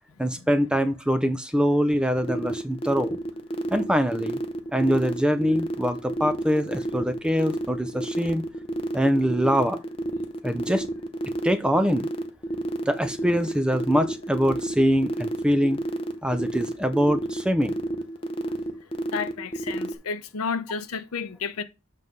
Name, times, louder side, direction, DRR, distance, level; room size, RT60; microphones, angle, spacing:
voice 1, 0.2-3.2 3.7-4.4 4.7-8.4 8.9-9.8 10.4-10.8 11.4-12.1 12.9-15.8 16.2-17.7, equal, 5° right, 0.4 m, -23 dB
sound 1, 2.2-19.9, right 1 dB, 25° left, 0.7 m, -30 dB
voice 2, 19.1-21.6, left 5 dB, 90° left, 0.7 m, -31 dB
7.6 x 3.2 x 5.2 m
head